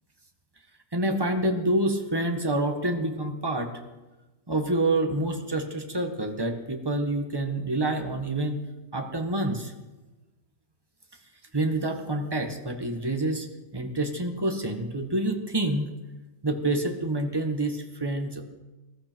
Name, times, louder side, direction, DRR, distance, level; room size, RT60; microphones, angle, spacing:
voice 1, 0.9-3.7 4.5-8.6 8.9-9.7 11.5-13.5 13.7-15.9 16.4-18.4, right 1 dB, 15° right, 4 dB, 1.4 m, -27 dB
21.0 x 13.0 x 4.6 m, 1.1 s
omnidirectional pair, 1.8 m